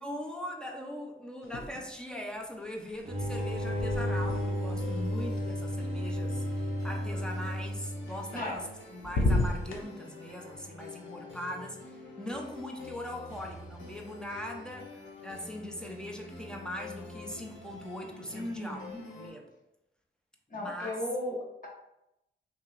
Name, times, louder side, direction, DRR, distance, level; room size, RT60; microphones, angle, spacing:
voice 1, 0.0-18.9 19.1-19.5 20.5-21.0, equal, 5° left, 0 dB, 0.5 m, -41 dB
sound 1, 1.4-2.1 2.4-6.5 8.1-8.8 9.0-9.8, left 2 dB, 85° left, 0.7 m, -34 dB
sound 2, 3.1-8.4, equal, 30° right, 0.7 m, -33 dB
sound 3, 3.3-19.3, left 3 dB, 70° left, 1.1 m, -48 dB
voice 2, 18.3-19.0 20.5-21.7, left 1 dB, 40° left, -5 dB, 1.2 m, -36 dB
5.7 x 2.9 x 2.4 m, 0.89 s
wide cardioid pair, 175°, 20 cm